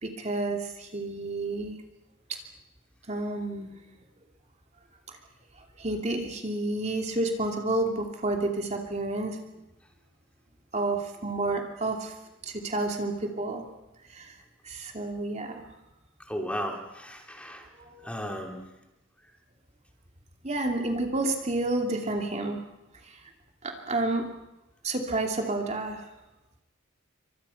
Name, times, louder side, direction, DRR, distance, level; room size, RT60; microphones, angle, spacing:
voice 1, 0.0-1.8 3.1-3.7 5.1-5.2 5.8-9.4 10.7-12.1 12.4-13.6 14.1-14.3 14.6-15.6 17.8-18.1 20.4-22.6 23.0-23.2 23.6-24.3 24.8-26.1, right 2 dB, 35° right, 2 dB, 2.8 m, -30 dB
voice 2, 16.3-17.6 18.0-18.6, equal, 5° left, 2 dB, 3.1 m, -35 dB
29.0 x 24.5 x 5.8 m, 0.95 s
head